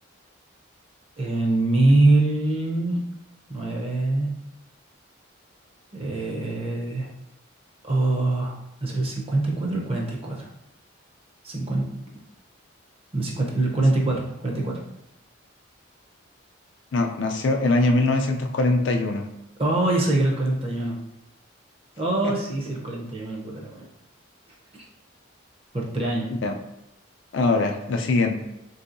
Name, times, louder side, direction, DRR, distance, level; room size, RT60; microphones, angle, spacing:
voice 1, 1.2-3.0 3.5-4.3 5.9-7.1 7.8-10.5 11.4-11.9 12.1-12.2 13.1-14.8 19.6-21.0 22.0-23.9 25.7-26.3, right 2 dB, 30° right, -2 dB, 0.6 m, -24 dB
voice 2, 16.9-19.2 26.4-26.6 27.3-28.4, left 2 dB, 65° left, 4 dB, 0.4 m, -22 dB
3.7 x 2.7 x 2.5 m, 0.85 s
head